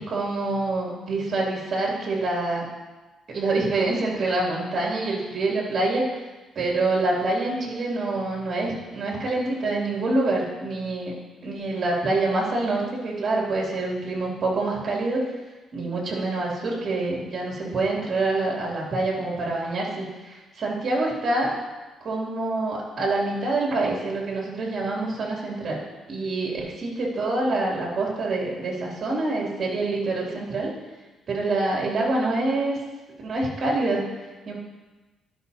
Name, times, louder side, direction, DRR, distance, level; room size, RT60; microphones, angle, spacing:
voice 1, 0.0-2.7 3.3-6.0 6.5-11.1 11.4-15.2 15.7-21.5 22.0-25.8 26.1-30.7 31.3-32.8 33.2-34.1 34.5-34.6, right 2 dB, 50° right, -3 dB, 2.6 m, -26 dB
12.0 x 6.1 x 2.7 m, 1.2 s
cardioid pair, 90°, 0 cm